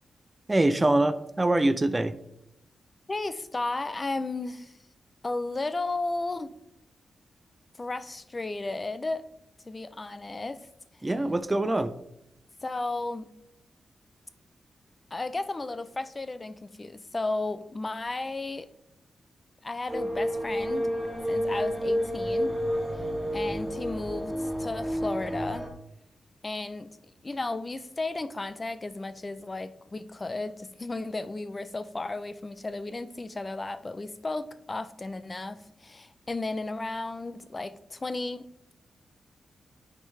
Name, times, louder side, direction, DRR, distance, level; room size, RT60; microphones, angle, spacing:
voice 1, 0.5-2.1 11.0-11.9, right 2 dB, 20° right, 0.5 m, -24 dB
voice 2, 3.1-4.8 5.2-6.5 7.8-9.3 9.7-10.7 12.6-13.3 15.1-18.7 19.6-20.9 21.3-22.6 22.9-23.0 23.3-25.7 26.4-26.9 27.2-38.5, left 2 dB, 30° left, 0.6 m, -34 dB
sound 1, 19.9-25.7, equal, 5° right, 2.5 m, -30 dB
9.6 x 5.2 x 3.3 m
cardioid pair, 85°, 0 cm